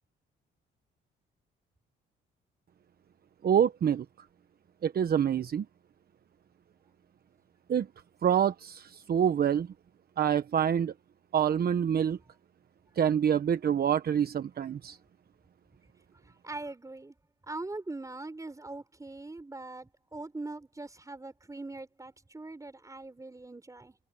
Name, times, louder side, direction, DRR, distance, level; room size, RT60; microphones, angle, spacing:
voice 1, 3.4-4.0 4.8-5.7 7.7-7.9 8.2-9.7 10.2-10.9 11.3-12.2 13.0-15.0, right 8 dB, 50° right, 1.1 m, -26 dB
voice 2, 16.2-17.2 17.5-24.0, right 2 dB, 15° right, 5.2 m, -42 dB
cardioid pair, 90°, 20 cm